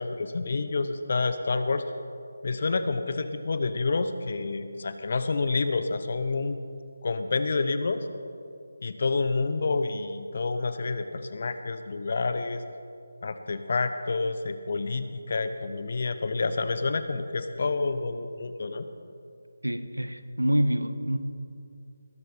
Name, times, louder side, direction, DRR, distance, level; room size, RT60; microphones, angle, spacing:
voice 1, 0.0-1.8 2.4-6.6 7.0-8.1 8.8-12.6 13.2-18.9, left 3 dB, 45° left, 10 dB, 0.9 m, -28 dB
voice 2, 19.6-21.2, equal, 90° right, 10 dB, 1.2 m, -26 dB
20.5 x 12.0 x 4.3 m, 2.5 s
figure-of-eight pair, 155°, 0 cm